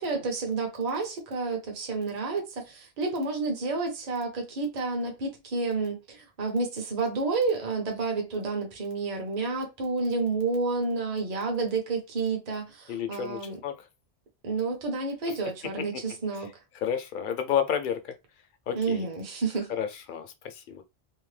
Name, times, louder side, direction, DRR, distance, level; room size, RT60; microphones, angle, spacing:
voice 1, 0.0-13.6 14.4-16.5 18.7-19.7, right 3 dB, 45° right, 0.8 m, -30 dB
voice 2, 12.9-13.9 15.3-15.4 16.7-18.1 18.7-19.1 19.7-20.8, left 8 dB, 60° left, 0.7 m, -31 dB
2.8 x 2.1 x 3.2 m
omnidirectional pair, 1.1 m